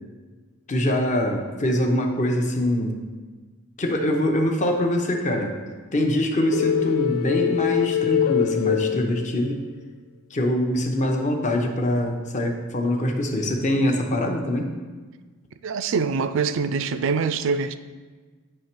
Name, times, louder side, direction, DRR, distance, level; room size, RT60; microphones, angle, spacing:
voice 1, 0.7-3.0 3.8-5.5 5.9-9.6 10.3-14.7, left 1 dB, 35° left, 3 dB, 0.7 m, -23 dB
sound 1, 6.5-9.7, left 11 dB, 85° left, 0.3 m, -24 dB
voice 2, 15.6-17.8, right 5 dB, 65° right, 11 dB, 0.4 m, -24 dB
9.8 x 3.3 x 4.4 m, 1.4 s
head